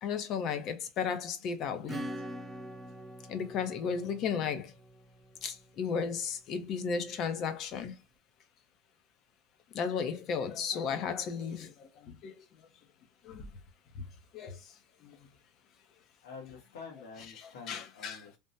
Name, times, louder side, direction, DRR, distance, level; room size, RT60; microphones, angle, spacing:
voice 1, 0.0-2.1 3.3-4.7 5.4-7.9 9.7-11.7 12.2-12.3 13.3-13.4 14.3-14.5 17.7-18.4, left 6 dB, 40° left, 0.6 m, -34 dB
Acoustic guitar / Strum, 1.9-6.2, right 1 dB, 10° right, 0.5 m, -44 dB
voice 2, 16.2-18.4, left 5 dB, 90° left, 1.3 m, -48 dB
3.4 x 2.1 x 2.6 m
supercardioid pair, 150°, 0 cm